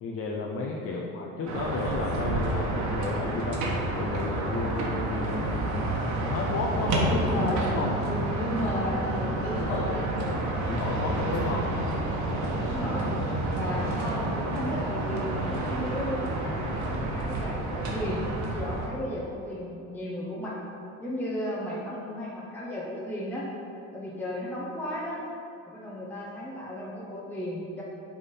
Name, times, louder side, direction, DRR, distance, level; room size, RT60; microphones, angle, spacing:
voice 1, 0.0-3.6 3.9-7.3 7.7-7.9 9.5-9.9 10.7-11.6, left 3 dB, 45° left, 0 dB, 0.7 m, -32 dB
sound 1, 1.5-18.9, right 1 dB, 55° right, 1.4 m, -29 dB
voice 2, 7.0-7.7 8.1-10.4 11.4-11.7 12.6-13.1 13.5-20.6 21.0-23.5 23.9-25.2 25.7-27.8, left 1 dB, 5° left, -6 dB, 0.9 m, -34 dB
8.2 x 3.6 x 5.5 m, 2.8 s
cardioid pair, 115°, 34 cm